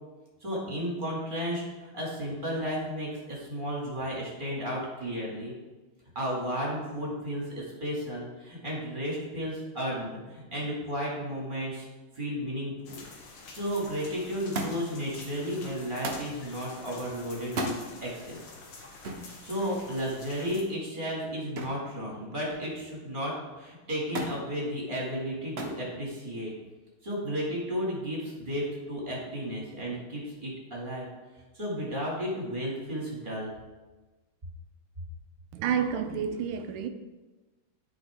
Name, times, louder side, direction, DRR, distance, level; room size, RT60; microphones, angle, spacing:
voice 1, 0.4-5.5 6.1-11.9 12.1-13.0 13.5-18.4 19.4-26.5 27.0-31.1 31.5-33.5, equal, 25° right, -4 dB, 2.4 m, -33 dB
sound 1, 12.9-20.6, left 3 dB, 65° left, 1.8 m, -48 dB
Thump thud, 14.5-15.0 16.0-16.3 17.4-17.8 19.0-19.3 21.6-21.9 22.2-22.8 24.1-24.4 25.6-25.8 26.8-27.3 28.2-28.3, right 2 dB, 50° right, 0.8 m, -35 dB
voice 2, 35.5-36.9, right 7 dB, 85° right, 7 dB, 1.6 m, -29 dB
10.5 x 5.3 x 3.6 m, 1.2 s
omnidirectional pair, 2.3 m